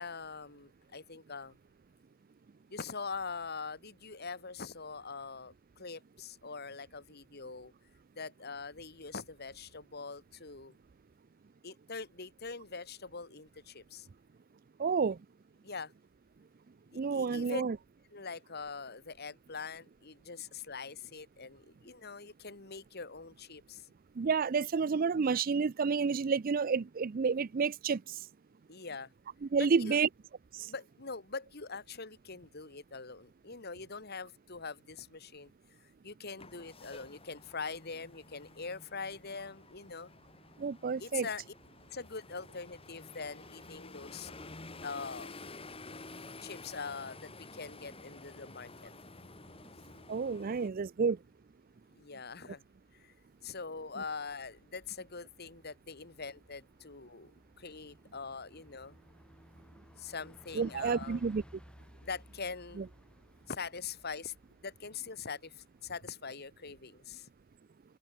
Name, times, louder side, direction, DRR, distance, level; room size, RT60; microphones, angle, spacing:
voice 1, 0.0-1.6 2.7-7.7 8.2-10.7 11.6-14.1 15.6-15.9 16.9-17.6 18.1-23.9 28.7-29.1 29.6-30.0 30.7-35.5 36.0-40.1 41.0-41.4 41.9-44.3 44.8-45.3 46.4-48.9 51.9-52.6 52.9-53.1 53.4-57.3 57.6-59.0 60.0-61.2 62.0-62.9 63.5-64.3 64.6-67.3, left 4 dB, 50° left, 2.0 m, -43 dB
voice 2, 14.8-15.2 16.9-17.8 24.2-28.2 29.4-30.1 30.5-30.7 40.6-41.3 50.1-51.2 60.5-61.4 62.8-62.9, right 5 dB, 45° right, 0.4 m, -30 dB
sound 1, 36.4-50.7, left 3 dB, 25° left, 2.0 m, -51 dB
Bus, 50.5-66.1, equal, 5° left, 4.1 m, -60 dB
head